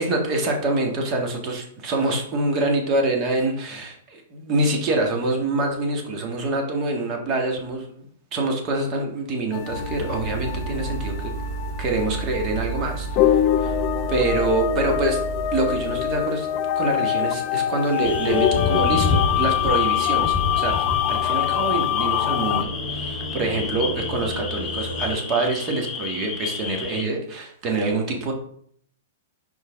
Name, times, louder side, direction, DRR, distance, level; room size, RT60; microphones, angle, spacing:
voice 1, 0.0-8.1 8.3-11.3 11.8-13.7 14.1-15.2 15.5-16.5 16.7-28.3, right 2 dB, 35° right, 2 dB, 1.7 m, -25 dB
sound 1, 9.5-22.6, left 11 dB, 40° left, 0.4 m, -24 dB
sound 2, 9.7-17.4 17.8-25.1, right 3 dB, 75° right, 1.8 m, -34 dB
sound 3, 18.0-27.0, left 5 dB, 20° left, 1.1 m, -29 dB
5.6 x 4.7 x 3.6 m, 0.63 s
hypercardioid pair, 130°, 0 cm